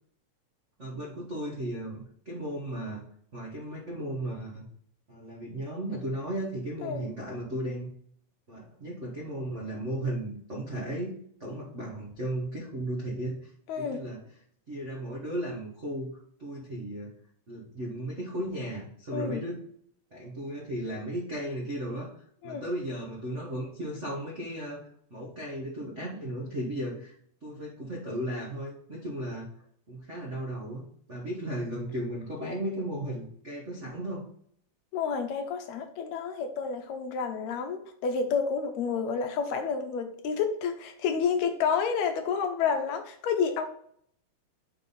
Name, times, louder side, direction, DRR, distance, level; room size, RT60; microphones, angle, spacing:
voice 1, 0.8-3.0 3.3-4.6 5.1-7.9 8.5-11.1 11.4-13.5 13.8-14.2 14.7-16.1 16.4-17.1 17.5-19.6 20.1-27.1 27.4-29.5 29.9-34.2, right 1 dB, 55° right, -3 dB, 0.8 m, -35 dB
voice 2, 13.7-14.0 19.1-19.4 22.4-22.6 34.9-43.6, left 6 dB, 75° left, 6 dB, 1.9 m, -29 dB
5.6 x 4.2 x 5.3 m, 0.64 s
omnidirectional pair, 3.4 m